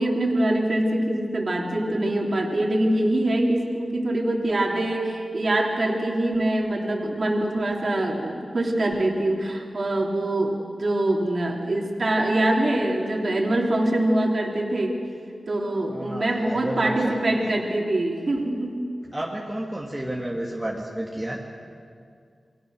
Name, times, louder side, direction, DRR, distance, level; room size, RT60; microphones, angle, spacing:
voice 1, 0.0-14.9 15.5-18.8, right 1 dB, 50° right, -1 dB, 3.2 m, -24 dB
voice 2, 15.9-17.2 19.1-21.4, right 1 dB, 10° right, -3 dB, 2.4 m, -31 dB
29.0 x 22.5 x 6.5 m, 2.3 s
wide cardioid pair, 105°, 0 cm